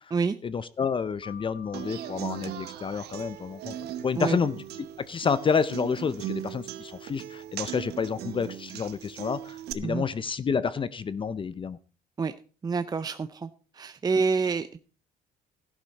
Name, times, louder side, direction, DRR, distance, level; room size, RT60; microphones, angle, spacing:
voice 1, 0.4-3.8 4.0-4.6 5.1-11.8, left 6 dB, 30° left, 15 dB, 0.6 m, -29 dB
Keyboard (musical), 1.2-3.8, left 7 dB, 55° left, 4.2 m, -51 dB
Human voice / Acoustic guitar, 1.7-9.7, right 12 dB, 75° right, 1.1 m, -38 dB
voice 2, 12.6-13.5 13.7-14.8, right 4 dB, 25° right, 10 dB, 0.6 m, -27 dB
13.5 x 11.5 x 4.1 m, 0.37 s
cardioid pair, 110°, 17 cm